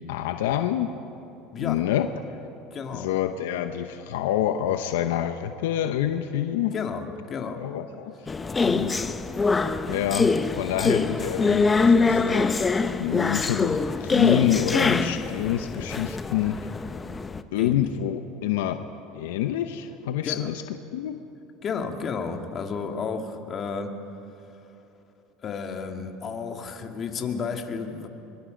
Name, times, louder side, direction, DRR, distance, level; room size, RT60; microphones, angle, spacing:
voice 1, 0.1-0.9 1.5-2.1 2.9-6.7 7.6-8.1 8.6-9.1 9.9-16.7 17.5-18.8 19.1-20.6 20.9-21.2, left 11 dB, 85° left, 8 dB, 0.8 m, -27 dB
voice 2, 2.7-3.1 6.7-7.6 17.6-17.9 20.3-20.5 21.6-23.9 25.4-28.1, left 5 dB, 40° left, 4 dB, 2.2 m, -32 dB
sound 1, 8.3-17.4, left 4 dB, 20° left, 0.9 m, -24 dB
23.5 x 23.0 x 5.2 m, 2.8 s
supercardioid pair, 105°, 0 cm